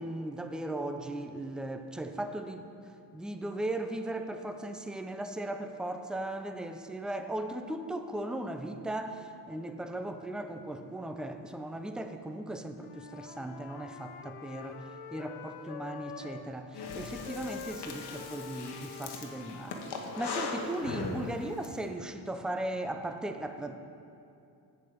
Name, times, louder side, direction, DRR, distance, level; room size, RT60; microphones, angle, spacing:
voice 1, 0.0-2.7 3.1-14.8 15.1-23.7, right 1 dB, ahead, 7 dB, 0.4 m, -37 dB
Wind instrument woodwind instrument, 12.7-16.5 16.8-20.6, left 8 dB, 75° left, 0.7 m, -46 dB
Breathing, 16.7-21.7, left 4 dB, 55° left, 1.2 m, -39 dB
7.7 x 6.9 x 5.0 m, 2.6 s
cardioid pair, 80°, 48 cm